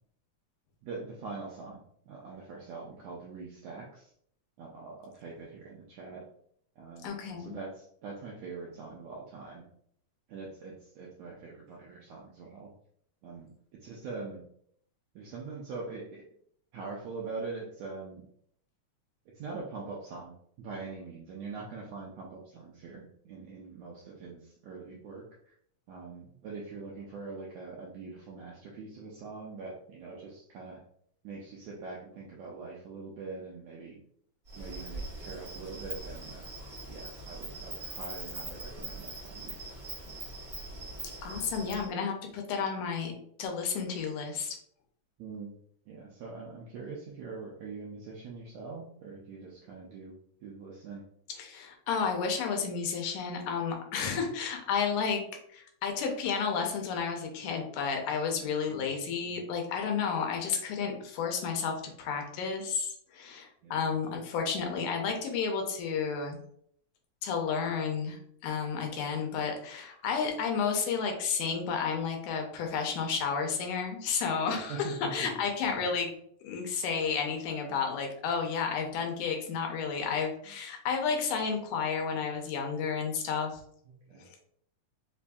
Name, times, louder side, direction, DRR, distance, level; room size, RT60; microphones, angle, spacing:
voice 1, 0.8-4.1 4.6-6.2 6.8-7.1 7.4-9.7 10.3-12.7 13.2-14.4 15.1-16.2 16.7-18.2 19.3-25.5 25.9-30.8 31.2-34.0 34.6-36.5 36.9-39.7 45.2-45.5 45.9-50.2 50.4-51.0 54.1-54.2 58.7-58.9 63.6-63.9 74.7-75.3 75.6-75.9 83.9-84.3, right 4 dB, 80° right, -3 dB, 1.5 m, -43 dB
voice 2, 7.0-7.5 41.2-43.1 43.4-44.6 51.4-55.2 55.5-66.4 67.2-76.2 76.4-83.6 84.2-84.4, left 6 dB, 80° left, 3 dB, 2.1 m, -32 dB
Insect, 34.5-41.9, right 2 dB, 50° right, 0.8 m, -42 dB
5.2 x 2.5 x 2.2 m, 0.66 s
omnidirectional pair, 3.6 m